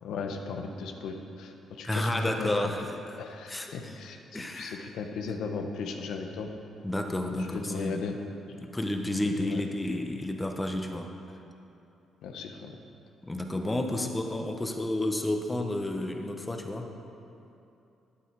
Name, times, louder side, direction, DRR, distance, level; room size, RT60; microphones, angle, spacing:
voice 1, 0.0-2.5 3.2-6.5 7.4-8.2 8.5-8.6 9.2-9.6 12.2-12.8, left 5 dB, 85° left, 4 dB, 1.0 m, -37 dB
voice 2, 1.8-3.2 3.5-4.0 4.3-4.9 6.8-8.0 8.6-11.1 13.2-16.9, left 1 dB, 15° left, 4 dB, 1.1 m, -31 dB
11.5 x 9.2 x 4.7 m, 2.8 s
cardioid pair, 90°, 0 cm